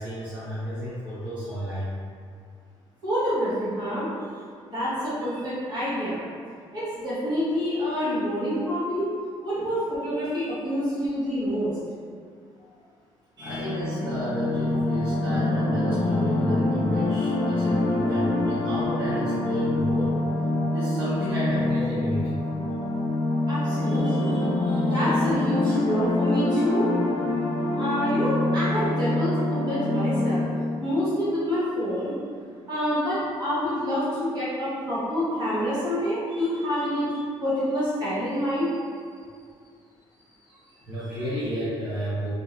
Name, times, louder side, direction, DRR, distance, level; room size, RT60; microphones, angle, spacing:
voice 1, 0.0-1.9 9.6-9.7 12.5-12.7 13.4-20.1 20.7-22.3 40.9-42.4, equal, 15° right, -14 dB, 0.8 m, -31 dB
voice 2, 3.0-6.2 6.7-9.1 9.4-11.7 13.4-13.6 23.5-26.9 27.7-30.4 30.8-32.1 32.7-37.1 37.4-38.7, equal, 40° right, -11 dB, 1.3 m, -27 dB
sound 1, 13.4-30.8, left 2 dB, 45° left, 0.5 m, -25 dB
2.7 x 2.1 x 2.4 m, 2.1 s
cardioid pair, 130°, 11 cm